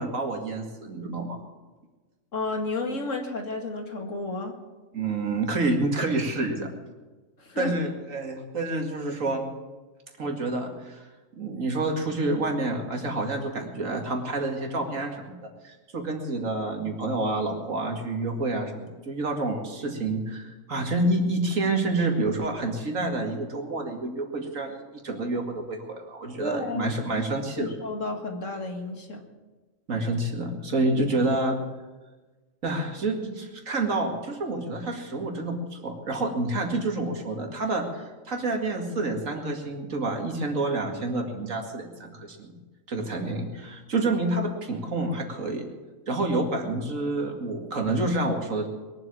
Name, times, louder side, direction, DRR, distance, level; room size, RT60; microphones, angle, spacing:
voice 1, 0.0-1.4 4.9-6.7 7.6-9.4 10.2-11.1 11.4-15.4 15.6-27.7 29.9-31.6 32.6-42.5 42.9-45.7 46.1-48.7, right 2 dB, 85° right, 3 dB, 2.5 m, -28 dB
voice 2, 2.3-4.5 7.4-7.8 26.4-26.9 27.6-29.2, left 3 dB, 70° left, 3 dB, 2.3 m, -32 dB
21.5 x 7.9 x 8.5 m, 1.3 s
omnidirectional pair, 1.4 m